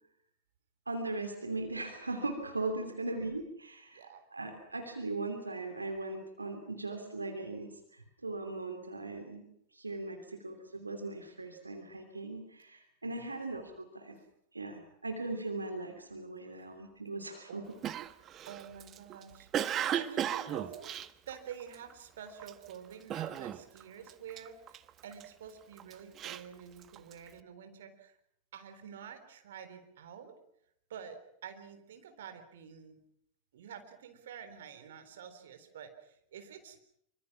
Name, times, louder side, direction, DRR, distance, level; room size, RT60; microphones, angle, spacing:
voice 1, 0.9-9.5 9.7-14.2 14.5-17.6, right 2 dB, 80° right, 5 dB, 2.9 m, -39 dB
voice 2, 3.9-4.2 13.1-13.3 17.5-17.6 18.5-20.9 21.3-28.2 28.5-30.4 30.9-33.0 33.5-36.8, right 8 dB, 60° right, 8 dB, 3.8 m, -48 dB
Cough, 17.8-21.9 22.4-22.7 23.1-23.8 24.1-25.2 25.8-27.3, right 10 dB, 30° right, 1.2 m, -35 dB
26.0 x 25.0 x 6.0 m, 0.74 s
figure-of-eight pair, 90°, 0 cm